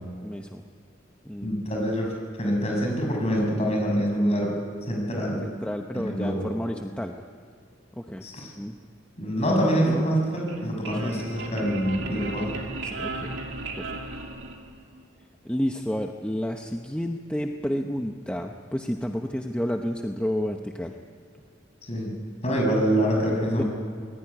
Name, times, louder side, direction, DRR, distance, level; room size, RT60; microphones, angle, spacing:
voice 1, 0.2-0.6 1.2-1.5 5.4-7.1 8.0-8.2 8.6-8.7 9.8-10.0 11.0-11.1 12.8-13.4 13.8-14.0 15.4-21.0 23.6-23.7, equal, 5° left, 3 dB, 0.9 m, -30 dB
voice 2, 1.4-2.1 2.4-4.6 4.9-5.4 5.9-6.4 8.2-8.5 9.2-12.5 21.9-22.1 22.4-23.7, equal, 35° left, 0 dB, 6.5 m, -25 dB
sound 1, 10.3-15.0, right 2 dB, 70° right, 2.9 m, -35 dB
24.5 x 20.0 x 9.9 m, 2.3 s
head